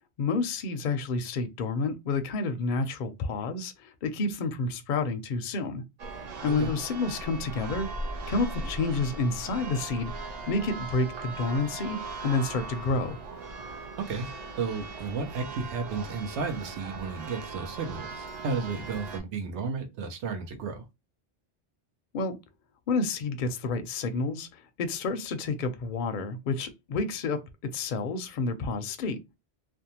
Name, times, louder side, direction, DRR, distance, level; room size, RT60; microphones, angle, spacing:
voice 1, 0.2-5.8 6.4-7.9 8.3-10.1 10.5-12.0 12.2-13.2 22.1-22.4 22.9-24.5 24.8-27.4 27.7-29.2, left 3 dB, 60° left, 0.6 m, -29 dB
Church bell, 6.0-19.2, right 3 dB, 50° right, 0.5 m, -39 dB
voice 2, 14.6-20.8, right 4 dB, 85° right, 0.9 m, -33 dB
2.5 x 2.1 x 2.8 m
omnidirectional pair, 1.1 m